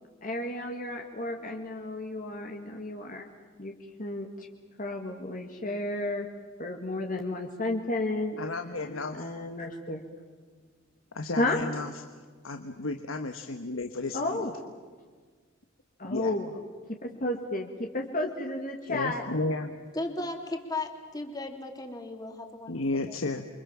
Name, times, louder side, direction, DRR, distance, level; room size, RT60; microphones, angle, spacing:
voice 1, 0.2-3.3 3.6-4.5 4.8-6.3 6.6-8.4 9.1-10.0 11.4-11.6 14.1-14.5 16.0-16.5 17.0-19.2, left 2 dB, 40° left, 2 dB, 2.0 m, -32 dB
voice 2, 8.4-9.2 11.1-11.9 12.4-14.4 16.1-16.3 18.9-19.7 22.7-23.4, left 2 dB, 80° left, 6 dB, 1.4 m, -33 dB
voice 3, 19.9-23.5, left 2 dB, 20° left, 4 dB, 3.0 m, -36 dB
29.5 x 25.0 x 7.5 m, 1.5 s
head